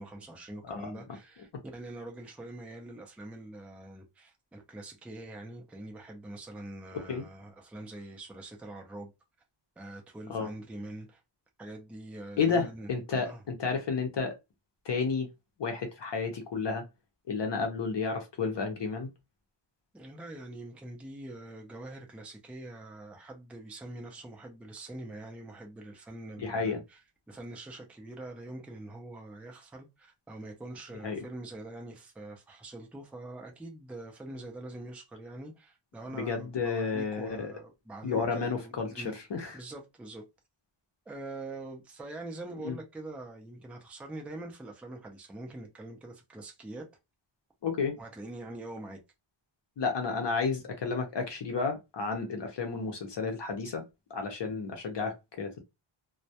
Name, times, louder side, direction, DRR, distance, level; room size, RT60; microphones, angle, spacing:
voice 1, 0.0-9.1 9.8-11.2 11.6-13.4 19.9-27.0 27.3-39.1 39.5-40.2 41.1-46.9 48.0-49.0, right 2 dB, 5° right, 0.4 m, -44 dB
voice 2, 0.7-1.0 7.1-7.3 10.3-10.5 12.4-14.3 14.9-15.3 15.6-16.8 17.3-19.1 26.4-26.8 31.0-31.2 36.1-37.5 38.0-39.6 42.6-42.7 47.6-48.0 49.8-53.8 54.1-55.6, left 5 dB, 60° left, 0.6 m, -31 dB
2.2 x 2.1 x 2.7 m
wide cardioid pair, 170°, 50 cm